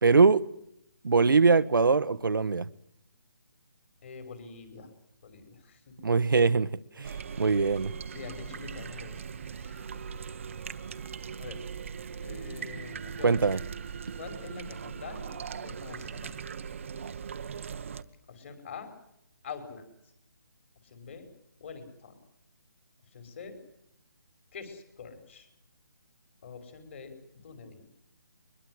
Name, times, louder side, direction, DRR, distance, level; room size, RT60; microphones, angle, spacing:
voice 1, 0.0-0.4 1.0-2.7 6.0-6.7 7.0-7.9 13.2-13.6, right 4 dB, 80° right, 1.3 m, -22 dB
voice 2, 4.0-4.9 5.2-6.2 7.3-7.5 8.1-10.2 10.9-11.1 11.4-11.6 12.2-13.5 14.2-15.3 15.6-16.4 18.3-18.9 19.4-19.9 20.8-21.3 21.6-22.1 23.1-23.6 24.5-25.5 26.4-27.2 27.4-27.9, left 5 dB, 35° left, 5.4 m, -45 dB
sound 1, 7.0-18.0, right 7 dB, 40° right, 1.1 m, -40 dB
23.0 x 22.0 x 7.9 m
hypercardioid pair, 170°, 11 cm